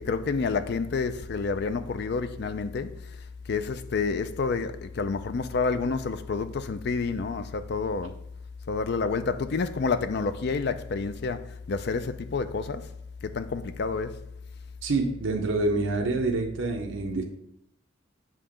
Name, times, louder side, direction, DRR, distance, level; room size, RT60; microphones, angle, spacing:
voice 1, 0.0-2.9 3.5-8.2 8.7-12.9 13.2-14.1, left 4 dB, 55° left, 0.4 m, -29 dB
voice 2, 14.8-17.2, right 3 dB, 75° right, 0.7 m, -27 dB
7.4 x 2.9 x 5.0 m
head